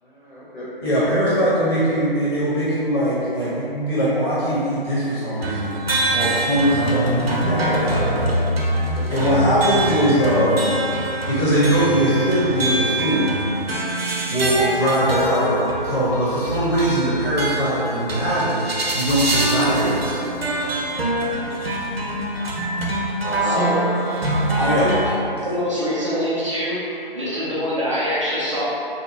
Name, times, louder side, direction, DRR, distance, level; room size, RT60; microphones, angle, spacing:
voice 1, 0.0-1.2 8.9-9.3 21.2-21.6 22.8-22.9 23.2-24.2, equal, 50° left, -9 dB, 1.1 m, -33 dB
voice 2, 0.8-5.7 6.1-8.4 9.1-10.7 11.3-13.3 14.3-18.6 18.9-20.5 24.6-24.9, equal, 25° left, -10 dB, 0.8 m, -21 dB
sound 1, 5.4-25.2, right 1 dB, 80° right, 0.6 m, -24 dB
voice 3, 23.4-23.8 24.6-25.1 25.4-28.6, equal, 35° right, -10 dB, 0.5 m, -24 dB
2.7 x 2.4 x 2.7 m, 2.7 s
figure-of-eight pair, 145°, 30 cm